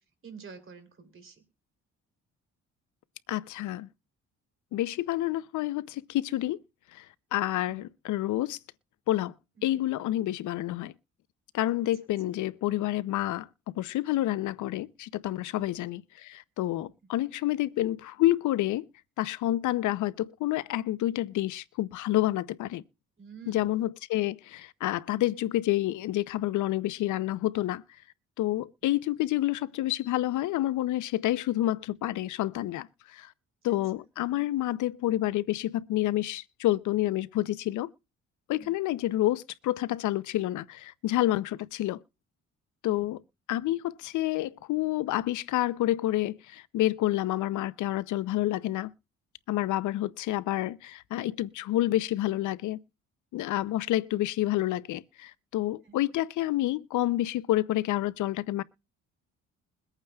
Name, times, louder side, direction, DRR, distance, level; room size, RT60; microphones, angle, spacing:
voice 1, 0.2-1.4 7.7-7.8 9.6-9.7 15.5-15.7 23.2-23.7 33.6-33.8 38.5-38.8 42.8-43.0 55.8-56.0, right 6 dB, 40° right, 3.1 m, -48 dB
voice 2, 3.3-3.9 4.7-6.6 6.9-7.1 7.3-8.6 9.1-9.3 9.6-10.9 11.5-13.5 13.8-18.8 19.2-22.8 23.5-27.8 28.4-33.3 33.6-37.9 38.5-42.0 42.8-43.2 43.5-48.9 49.5-52.8 53.3-58.6, left 15 dB, 75° left, 0.6 m, -29 dB
22.5 x 8.9 x 2.3 m
cardioid pair, 90°, 30 cm